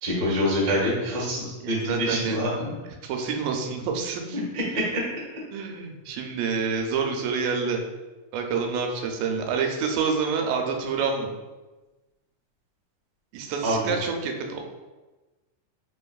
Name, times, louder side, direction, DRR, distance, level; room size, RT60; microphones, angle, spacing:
voice 1, 0.0-2.5 4.3-4.6 13.6-13.9, equal, 60° right, -6 dB, 0.9 m, -26 dB
voice 2, 1.6-2.4 3.0-4.4 5.5-7.8 8.3-11.3 13.3-14.7, right 5 dB, 90° right, 3 dB, 2.3 m, -28 dB
5.1 x 3.3 x 2.3 m, 1.2 s
omnidirectional pair, 3.8 m